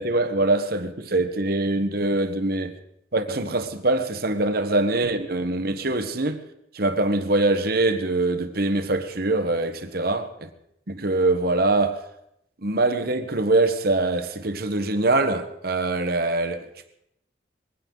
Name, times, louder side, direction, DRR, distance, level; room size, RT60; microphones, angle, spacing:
voice 1, 0.0-2.7 3.1-6.4 6.7-10.3 10.9-12.0 12.6-16.7, right 2 dB, 55° right, 1.2 m, -23 dB
21.5 x 16.5 x 4.0 m
head